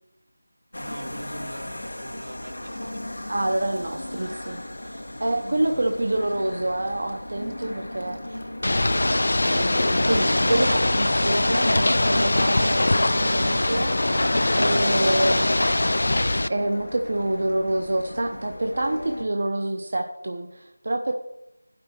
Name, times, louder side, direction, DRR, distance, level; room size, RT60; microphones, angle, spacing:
sound 1, 0.7-19.2, left 1 dB, 85° left, 1.4 m, -34 dB
voice 1, 0.8-3.3 5.7-5.9 8.7-9.7 14.9-15.7, right 1 dB, 85° right, 2 dB, 1.9 m, -40 dB
voice 2, 3.3-8.4 10.1-13.9 14.6-15.5 16.5-21.1, right 1 dB, 50° right, 3 dB, 0.8 m, -27 dB
Ocean / Boat Water vehicle, 8.6-16.5, left 1 dB, 70° left, 0.4 m, -22 dB
sound 2, 10.8-14.9, left 3 dB, 25° left, 0.7 m, -39 dB
14.0 x 6.1 x 4.5 m, 0.90 s
figure-of-eight pair, 175°, 0 cm